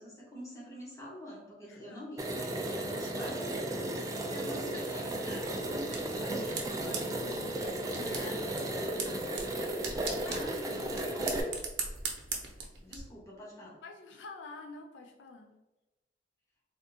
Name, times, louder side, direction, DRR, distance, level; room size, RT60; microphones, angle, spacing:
voice 1, 0.0-7.0 8.1-9.5 10.3-11.5 12.8-13.8, left 1 dB, 20° left, -5 dB, 1.0 m, -46 dB
voice 2, 1.7-2.0 6.5-7.6 7.9-8.4 10.2-10.5 13.8-15.5, left 3 dB, 90° left, 2 dB, 0.4 m, -48 dB
sound 1, 2.2-11.4, right 1 dB, 20° right, 0.3 m, -35 dB
sound 2, 5.2-13.0, right 5 dB, 80° right, 0.7 m, -41 dB
3.5 x 2.4 x 2.7 m, 1.1 s
head